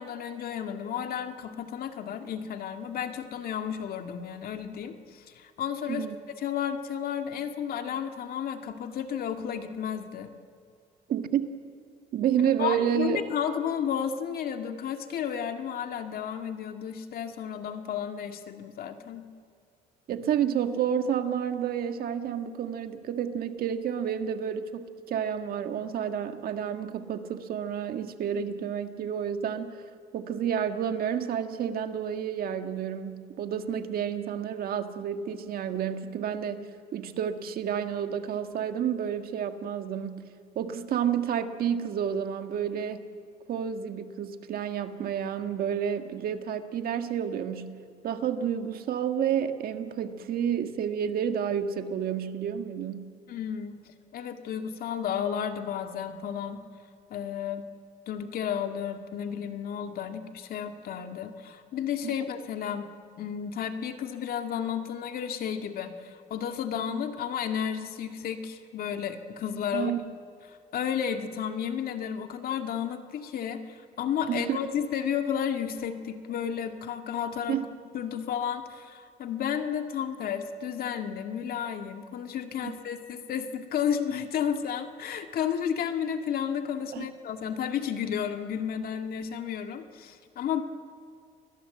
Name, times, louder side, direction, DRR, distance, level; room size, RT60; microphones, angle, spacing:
voice 1, 0.0-10.3 12.6-19.2 53.3-56.6 57.1-57.6 58.1-62.9 63.2-69.9 70.5-77.6 77.9-90.6, left 8 dB, 60° left, 5 dB, 2.1 m, -32 dB
voice 2, 11.1-11.4 12.1-13.2 20.1-29.8 30.1-40.3 40.5-43.1 43.5-47.8 48.0-53.1 69.7-70.1 74.3-74.6 77.5-77.6 82.6-82.7 86.9-87.1, right 8 dB, 60° right, 7 dB, 1.8 m, -30 dB
29.5 x 20.5 x 7.8 m, 2.4 s
cardioid pair, 110°, 17 cm